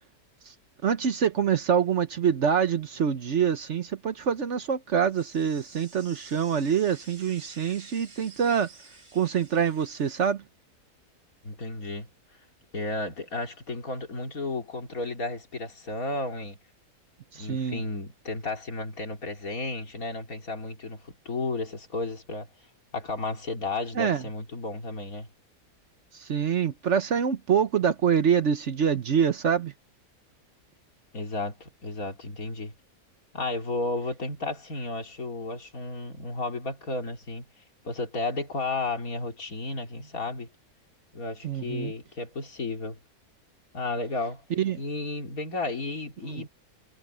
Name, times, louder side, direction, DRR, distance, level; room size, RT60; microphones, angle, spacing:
voice 1, 0.8-8.7 9.1-10.4 17.3-17.8 24.0-24.2 26.1-29.7 41.4-41.9 44.6-44.8 46.3-46.4, right 7 dB, 55° right, 1.1 m, -25 dB
sound 1, 5.1-10.3, right 3 dB, 80° right, 5.4 m, -51 dB
voice 2, 11.4-12.1 12.7-16.6 17.4-22.5 22.9-25.3 31.1-32.7 33.3-37.5 37.8-40.5 41.1-43.0 43.7-44.4 44.8-46.5, left 2 dB, 70° left, 3.6 m, -33 dB
omnidirectional pair, 1.6 m